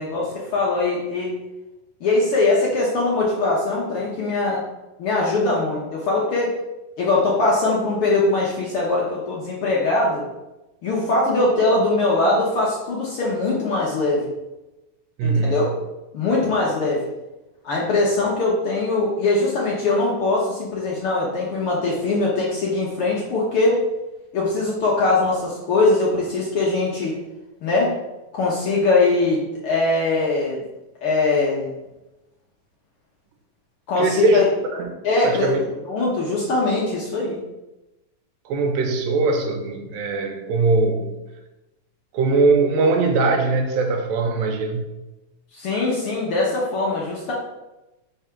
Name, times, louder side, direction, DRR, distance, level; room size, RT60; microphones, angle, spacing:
voice 1, 0.0-1.4 2.0-4.6 5.0-6.5 7.0-10.2 10.8-14.3 15.2-15.7 16.1-17.0 17.6-23.8 24.3-27.1 27.6-28.0 28.3-30.6 31.0-31.7 33.9-34.4 35.0-35.5 35.8-37.4 45.5-47.3, left 3 dB, 75° left, -4 dB, 1.2 m, -21 dB
voice 2, 15.2-15.6 34.0-34.5 34.7-35.0 35.2-35.7 38.5-41.2 42.1-44.9, right 3 dB, 85° right, 3 dB, 2.4 m, -21 dB
4.8 x 4.0 x 5.7 m, 1.0 s
omnidirectional pair, 3.9 m